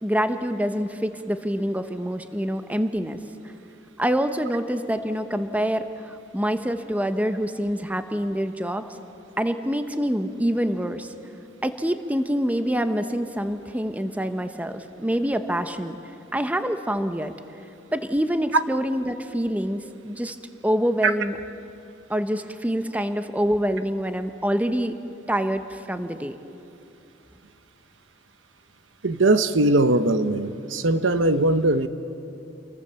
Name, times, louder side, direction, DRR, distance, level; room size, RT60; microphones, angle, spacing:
voice 1, 0.0-3.2 4.0-8.8 9.4-11.1 11.6-16.0 16.3-17.3 17.9-20.4 20.6-21.4 22.1-24.9 25.3-26.4, equal, 10° right, 8 dB, 0.9 m, -26 dB
voice 2, 29.0-31.9, right 2 dB, 80° right, 10 dB, 1.0 m, -20 dB
28.5 x 22.0 x 7.0 m, 2.8 s
head